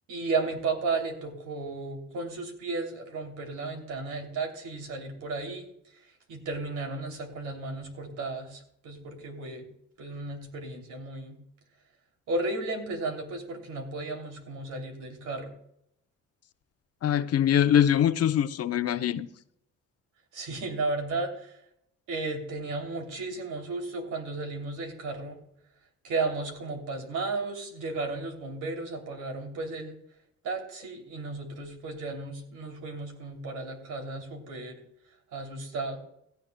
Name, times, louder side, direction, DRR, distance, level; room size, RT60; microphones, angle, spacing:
voice 1, 0.1-5.7 5.9-9.7 10.0-11.4 12.3-15.5 20.3-21.6 22.1-25.4 26.0-29.9 30.4-34.8 35.3-36.0, right 3 dB, 80° right, 2.9 m, -34 dB
voice 2, 17.0-19.3, left 10 dB, 55° left, 0.7 m, -23 dB
17.0 x 13.0 x 2.2 m
cardioid pair, 90°, 30 cm